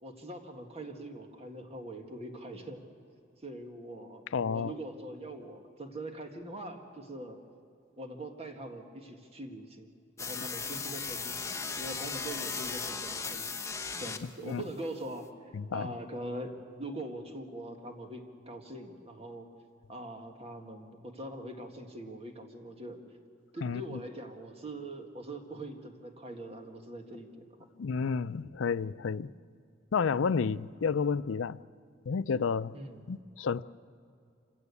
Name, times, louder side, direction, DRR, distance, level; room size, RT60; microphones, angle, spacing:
voice 1, 0.0-2.8 3.4-7.4 8.0-9.9 10.2-11.4 11.8-13.6 14.0-15.3 15.7-19.5 19.9-23.0 23.5-27.4 32.7-33.0, right 1 dB, 30° right, 1.8 m, -42 dB
voice 2, 4.3-4.7 10.4-10.5 14.4-14.6 15.5-15.9 23.6-24.0 27.8-29.3 29.9-31.6 32.1-32.7 33.1-33.6, left 5 dB, 85° left, 0.5 m, -31 dB
sound 1, 10.2-14.5, left 5 dB, 15° left, 1.0 m, -37 dB
26.5 x 16.5 x 8.4 m
head